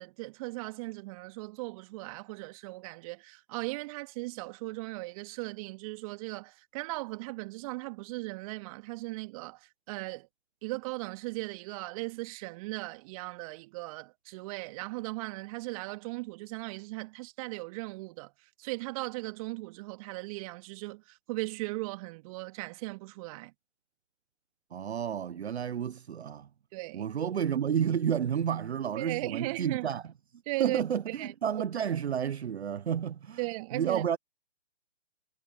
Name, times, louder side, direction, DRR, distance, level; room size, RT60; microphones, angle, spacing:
voice 1, 0.0-10.3 10.6-23.5 26.2-26.3 26.7-27.1 29.0-29.9 30.5-31.3 33.4-34.1, right 23 dB, 25° right, 2.7 m, -38 dB
voice 2, 24.7-26.5 26.9-30.0 30.6-33.4 33.7-34.2, right 8 dB, 55° right, 1.0 m, -31 dB
figure-of-eight pair, 135°, 38 cm